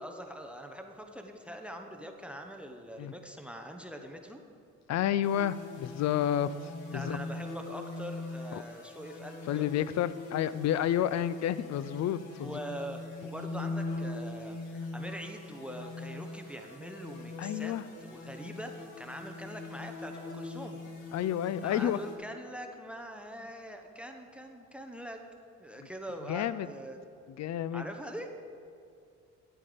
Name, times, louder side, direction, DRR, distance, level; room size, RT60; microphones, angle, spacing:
voice 1, 0.0-4.4 6.9-9.6 12.4-17.7 18.0-20.8 21.6-25.2 25.6-27.0 27.7-28.3, equal, 5° right, 5 dB, 0.9 m, -43 dB
voice 2, 4.9-7.2 8.5-8.6 9.5-12.5 17.4-17.8 21.1-22.0 25.8-25.9 26.3-26.7 27.4-27.9, left 10 dB, 60° left, 16 dB, 0.5 m, -30 dB
sound 1, 5.2-22.2, left 3 dB, 90° left, 1.7 m, -42 dB
11.0 x 8.5 x 5.1 m, 2.4 s
cardioid pair, 90°, 30 cm